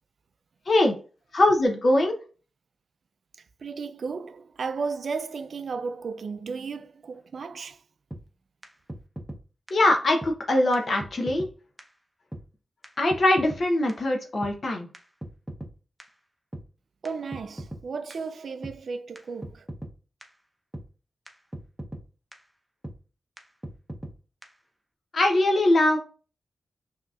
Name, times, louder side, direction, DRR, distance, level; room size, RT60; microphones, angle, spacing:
voice 1, 1.3-2.1 9.7-11.5 13.0-14.9 25.1-26.0, left 1 dB, 55° left, 0.7 m, -22 dB
voice 2, 3.6-7.8 17.0-19.6, right 5 dB, 70° right, 0.4 m, -34 dB
sound 1, 8.1-8.2 8.6-8.7 8.9-9.4 9.7-9.8 10.2-10.3 10.7-10.8 11.0-11.5 11.8-11.9 12.3-12.4 12.8-12.9 13.1-13.6 13.9-14.0 14.4-14.5 14.9-15.7 16.0-16.1 16.5-16.6 17.1-17.2 17.3-17.8 18.1-18.2 18.6-18.7 19.2-19.3 19.4-19.9 20.2-20.3 20.7-20.9 21.3-21.4 21.5-22.0 22.3-22.4 22.8-23.0 23.4-23.5 23.6-24.1 24.4-24.5, right 1 dB, 10° right, 0.7 m, -38 dB
5.7 x 2.8 x 2.4 m
cardioid pair, 75°, 0 cm